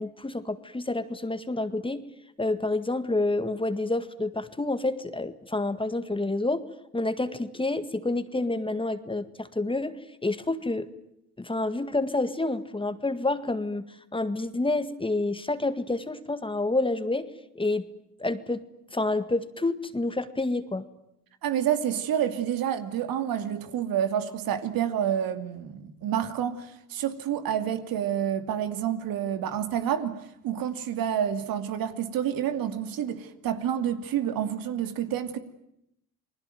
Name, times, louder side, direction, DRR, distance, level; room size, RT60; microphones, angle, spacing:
voice 1, 0.0-2.1 2.4-6.6 6.9-10.0 10.2-10.9 11.4-13.8 14.1-17.3 17.6-17.8 18.2-18.6 18.9-20.8, left 2 dB, 15° left, 1.9 m, -28 dB
voice 2, 21.4-35.4, right 9 dB, 70° right, 2.7 m, -29 dB
29.0 x 20.5 x 9.3 m
cardioid pair, 85°, 36 cm